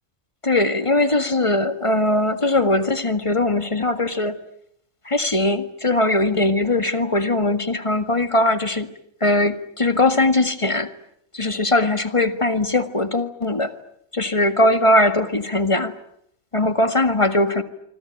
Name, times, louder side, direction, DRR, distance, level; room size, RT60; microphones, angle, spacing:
voice 1, 0.4-4.4 5.1-8.9 9.2-10.9 11.3-13.7 14.1-15.9 16.5-17.6, left 2 dB, 25° left, 10 dB, 1.8 m, -20 dB
26.5 x 25.0 x 9.1 m, 0.73 s
omnidirectional pair, 1.4 m